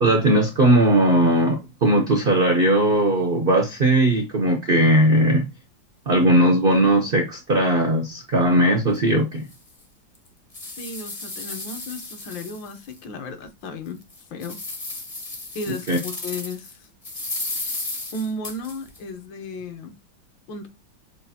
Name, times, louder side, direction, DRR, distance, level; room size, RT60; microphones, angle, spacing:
voice 1, 0.0-5.4 6.1-9.5 15.9-16.0, right 1 dB, 90° right, 0.5 m, -18 dB
sound 1, 8.9-9.0 9.5-9.6 10.1-13.0 13.4-13.5 14.0-16.7 17.0-19.0, left 2 dB, 35° left, 0.5 m, -34 dB
voice 2, 10.6-14.0 14.3-14.6 15.5-16.9 18.1-20.0 20.5-20.7, left 2 dB, 75° left, 1.5 m, -34 dB
6.5 x 2.4 x 2.6 m
omnidirectional pair, 2.1 m